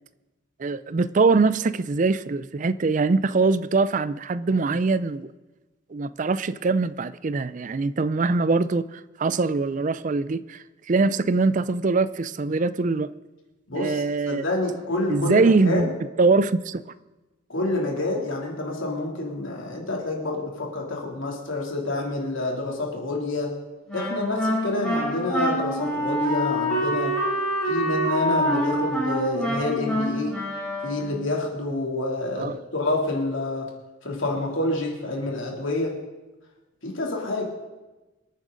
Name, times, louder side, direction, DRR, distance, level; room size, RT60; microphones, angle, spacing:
voice 1, 0.6-5.3 5.9-10.6 10.9-13.1 13.8-14.5 15.1-15.9 16.2-16.8 32.4-32.6, right 3 dB, 40° right, 0.4 m, -23 dB
voice 2, 13.7-15.9 17.5-23.5 23.9-27.2 27.6-30.3 30.8-33.7 34.0-35.9 36.8-37.4, left 2 dB, 70° left, 2.9 m, -28 dB
Wind instrument woodwind instrument, 23.9-31.2, equal, 5° left, 4.4 m, -26 dB
26.0 x 9.1 x 3.9 m
head